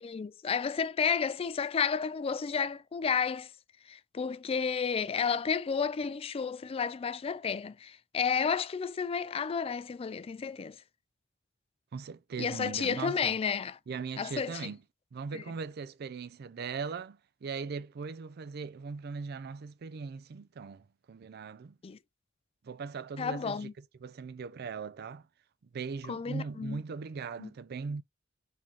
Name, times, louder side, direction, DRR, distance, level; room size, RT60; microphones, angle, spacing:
voice 1, 0.0-3.5 3.9-10.8 12.4-13.8 14.2-14.7 15.3-15.4 21.8-22.0 23.2-23.7 26.1-26.8 27.4-27.5, left 6 dB, 30° left, 0.3 m, -31 dB
voice 2, 11.9-13.4 13.9-14.8 15.1-21.8 22.6-25.2 25.7-28.0, right 5 dB, 50° right, 0.4 m, -39 dB
4.3 x 3.7 x 3.1 m
head